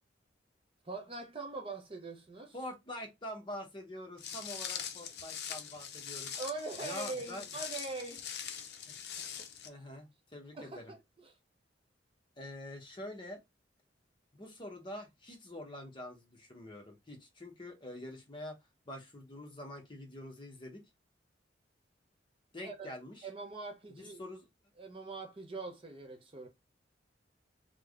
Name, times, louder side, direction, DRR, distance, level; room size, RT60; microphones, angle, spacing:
voice 1, 0.8-2.5 6.4-8.2 9.2-9.3 10.5-11.0 11.2-11.3 22.6-22.9 23.2-24.2 24.8-26.5, right 3 dB, 30° right, 0.6 m, -42 dB
voice 2, 2.5-6.3 6.8-7.4 8.9-9.0 9.6-10.9 12.4-13.4 14.3-18.6 18.9-20.8 22.5-23.3 23.9-24.5, left 1 dB, 25° left, 0.8 m, -45 dB
Walk footsteps, 4.2-9.7, left 8 dB, 60° left, 0.5 m, -42 dB
3.3 x 2.1 x 3.5 m
head